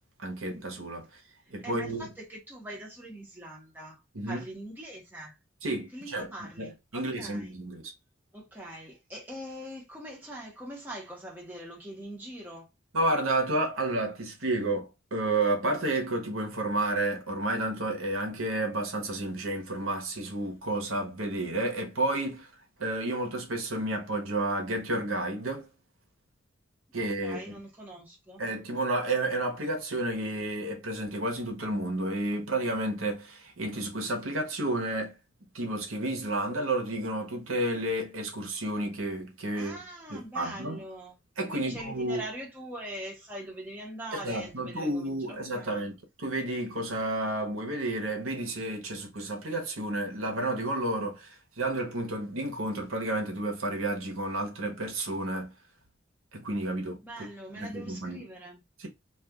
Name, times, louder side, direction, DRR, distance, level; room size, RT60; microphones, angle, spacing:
voice 1, 0.2-1.1 1.5-2.1 4.1-4.4 5.6-6.3 6.6-7.8 12.9-22.5 22.8-25.7 26.9-27.5 28.4-35.1 35.5-39.8 40.1-40.8 41.4-42.3 44.1-51.3 51.6-55.5 56.3-57.3 57.6-58.3 58.8-58.9, right 2 dB, 85° right, 1.0 m, -31 dB
voice 2, 1.6-4.0 4.3-5.4 5.9-7.5 8.3-12.7 27.0-28.4 39.5-41.2 41.5-45.8 57.0-58.6, right 1 dB, 10° right, 1.0 m, -42 dB
2.5 x 2.5 x 3.5 m
head